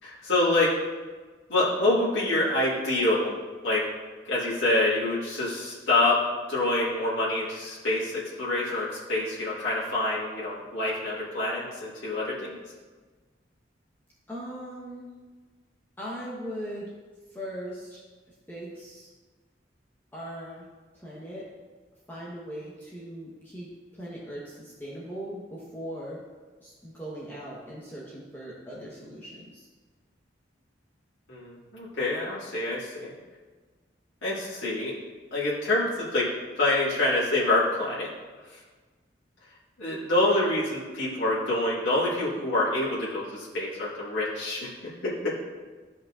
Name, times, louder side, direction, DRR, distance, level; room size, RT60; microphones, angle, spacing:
voice 1, 0.0-0.8 1.5-3.3 3.6-3.9 4.3-12.6 31.3-33.1 34.2-35.0 35.3-36.3 36.6-38.1 38.5-38.6 39.8-44.7 45.0-45.3, left 2 dB, 85° left, -9 dB, 1.9 m, -26 dB
voice 2, 14.3-15.1 16.0-16.9 17.3-18.0 18.5-19.1 20.1-20.6 21.0-21.5 22.1-26.2 26.6-29.7, equal, 10° left, -6 dB, 1.0 m, -39 dB
13.0 x 5.3 x 2.5 m, 1.4 s
head